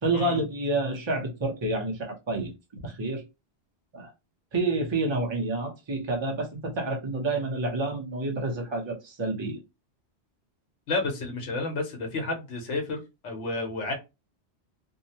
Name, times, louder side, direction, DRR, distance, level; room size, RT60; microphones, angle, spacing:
voice 1, 0.0-2.5 2.8-3.2 3.9-4.1 4.5-9.6, right 2 dB, 30° right, 0.7 m, -29 dB
voice 2, 10.9-13.9, left 3 dB, 85° left, 1.1 m, -31 dB
2.7 x 2.1 x 2.7 m
omnidirectional pair, 1.2 m